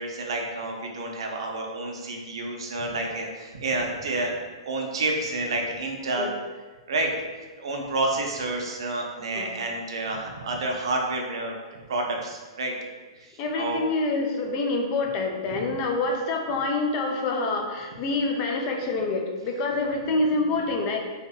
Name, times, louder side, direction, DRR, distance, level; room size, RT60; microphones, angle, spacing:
voice 1, 0.0-4.3 4.6-6.3 6.9-7.1 7.6-11.5 11.9-12.7 13.5-13.8, right 2 dB, 70° right, 1 dB, 0.5 m, -29 dB
voice 2, 13.4-21.0, left 3 dB, 40° left, 2 dB, 0.4 m, -26 dB
2.7 x 2.1 x 2.3 m, 1.3 s
hypercardioid pair, 120°, 3 cm